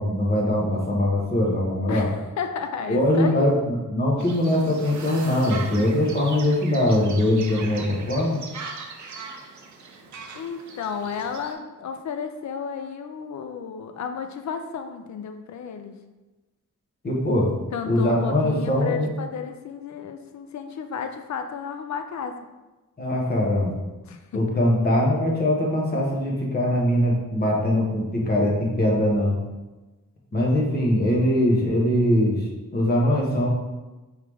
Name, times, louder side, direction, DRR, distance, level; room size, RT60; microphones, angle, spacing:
voice 1, 0.0-2.1 2.9-8.4 17.0-17.5 17.9-19.1 23.0-23.7 24.3-29.4 30.3-33.5, left 1 dB, 30° left, -3 dB, 1.0 m, -22 dB
voice 2, 1.9-3.5 10.3-16.0 17.7-22.4 24.1-24.4, left 6 dB, 65° left, 7 dB, 0.5 m, -32 dB
sound 1, 4.2-11.5, right 4 dB, 65° right, 0.6 m, -40 dB
4.6 x 3.2 x 3.5 m, 1.1 s
wide cardioid pair, 175°, 31 cm